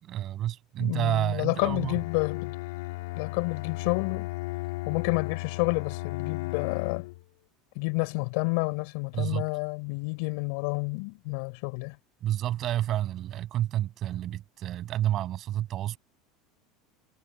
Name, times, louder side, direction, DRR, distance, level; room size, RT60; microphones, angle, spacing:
voice 1, 0.0-1.9 9.1-9.4 12.2-16.0, right 12 dB, 35° right, 7.7 m, -29 dB
voice 2, 0.8-2.5 3.2-4.3 4.9-7.1 7.7-12.0, left 32 dB, 65° left, 6.1 m, -30 dB
Bowed string instrument, 1.6-7.2, left 20 dB, 85° left, 3.1 m, -35 dB
supercardioid pair, 160°, 0 cm